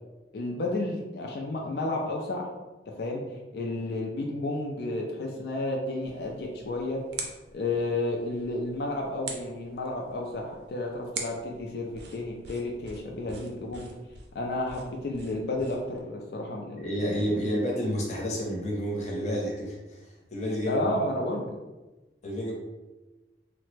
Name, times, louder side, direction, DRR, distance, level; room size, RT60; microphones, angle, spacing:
voice 1, 0.3-2.5 3.0-3.2 3.5-7.0 7.5-13.9 14.3-16.8 17.2-17.5 20.7-21.5, left 2 dB, 65° left, -1 dB, 0.4 m, -31 dB
sound 1, 6.0-16.0, right 4 dB, 70° right, 0.5 m, -44 dB
voice 2, 16.8-20.8 22.2-22.5, equal, 40° left, -2 dB, 0.7 m, -30 dB
3.2 x 2.0 x 3.1 m, 1.1 s
head